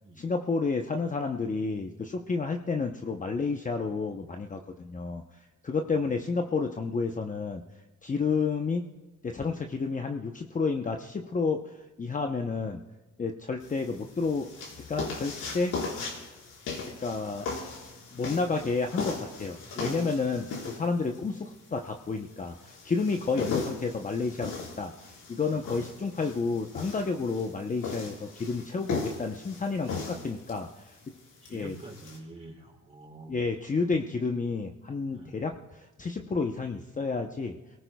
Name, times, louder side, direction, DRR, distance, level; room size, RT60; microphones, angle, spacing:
voice 1, 0.2-5.2 5.6-7.6 8.0-8.8 9.2-12.8 13.2-14.5 14.9-15.8 17.0-17.5 18.1-24.9 25.3-30.9 31.5-31.7 33.3-37.6, left 4 dB, 25° left, 4 dB, 0.8 m, -30 dB
sound 1, 13.6-32.2, left 4 dB, 80° left, 4.7 m, -38 dB
voice 2, 31.4-33.4 35.1-35.4, right 2 dB, 20° right, 0 dB, 4.7 m, -47 dB
26.5 x 18.5 x 2.3 m, 1.1 s
cardioid pair, 90°, 30 cm